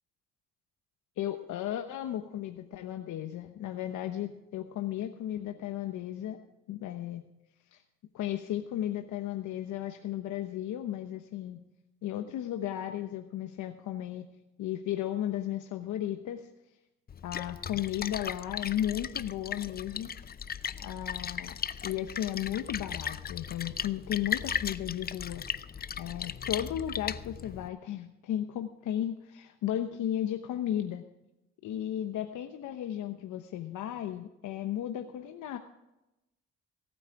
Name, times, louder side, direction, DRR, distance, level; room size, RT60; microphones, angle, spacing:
voice 1, 1.2-6.4 6.7-7.2 7.7-7.8 8.1-11.6 12.0-14.3 14.6-16.5 17.2-20.1 20.8-21.6 21.8-25.4 26.0-31.0 31.6-35.6, left 11 dB, 80° left, 6 dB, 1.0 m, -34 dB
Splash splatter, 17.1-27.7, left 7 dB, 30° left, 0.5 m, -37 dB
18.0 x 8.9 x 4.7 m, 0.93 s
cardioid pair, 90°, 30 cm